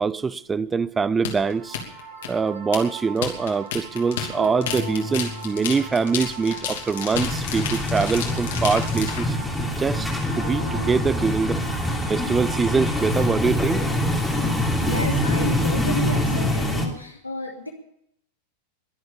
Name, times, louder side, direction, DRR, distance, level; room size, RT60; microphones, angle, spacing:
voice 1, 0.0-1.8 2.3-9.4 9.8-10.1 10.4-11.6 12.1-13.9, right 5 dB, 15° right, 0.5 m, -24 dB
sound 1, 1.2-9.2, left 8 dB, 60° left, 3.0 m, -31 dB
sound 2, 1.4-16.5, right 2 dB, 45° right, 6.9 m, -38 dB
sound 3, 7.1-16.9, left 1 dB, ahead, 3.2 m, -24 dB
voice 2, 14.8-17.7, left 2 dB, 85° left, 3.0 m, -31 dB
22.5 x 7.9 x 7.0 m
figure-of-eight pair, 90°, 0 cm